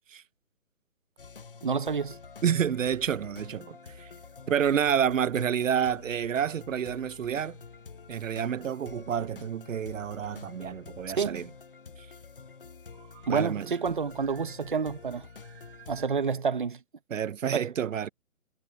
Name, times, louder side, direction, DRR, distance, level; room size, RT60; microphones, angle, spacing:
sound 1, 1.2-16.1, left 5 dB, 40° left, 0.8 m, -48 dB
voice 1, 1.6-2.2 11.2-11.5 13.3-15.3 15.9-16.8 17.5-17.7, right 5 dB, 35° right, 1.0 m, -29 dB
sound 2, 2.2-16.2, right 15 dB, 15° right, 2.6 m, -62 dB
voice 2, 2.4-4.1 4.5-7.6 8.1-11.5 13.3-13.7 17.1-18.1, right 8 dB, 65° right, 0.7 m, -29 dB
hypercardioid pair, 175°, 42 cm